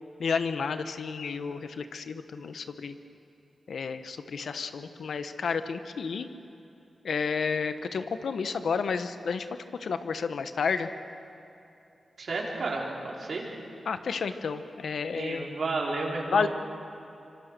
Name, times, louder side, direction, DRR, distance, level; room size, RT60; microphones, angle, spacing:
voice 1, 0.2-2.9 3.7-6.3 7.0-9.5 9.8-10.9 13.9-15.5 16.3-16.5, left 5 dB, 80° left, 10 dB, 1.1 m, -31 dB
voice 2, 12.2-12.9 13.2-13.4 15.1-16.5, right 3 dB, 60° right, -2 dB, 4.8 m, -31 dB
26.0 x 25.5 x 6.8 m, 2.8 s
wide cardioid pair, 100°, 0 cm